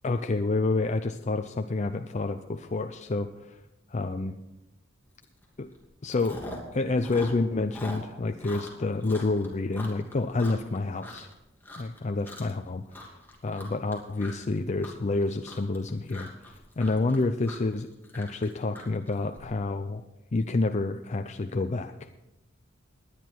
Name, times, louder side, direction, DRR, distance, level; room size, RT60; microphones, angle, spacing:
voice 1, 0.0-3.6 3.9-4.4 5.6-5.7 6.0-6.4 6.7-11.3 11.8-13.0 13.4-17.9 18.1-20.0 20.3-22.1, left 3 dB, 35° left, 7 dB, 0.5 m, -29 dB
Chewing mastication, 5.2-5.4 5.7-6.7 7.0-11.3 11.6-12.0 12.2-12.6 12.9-19.4, left 1 dB, 10° left, 2.6 m, -43 dB
19.5 x 10.0 x 4.6 m, 0.96 s
head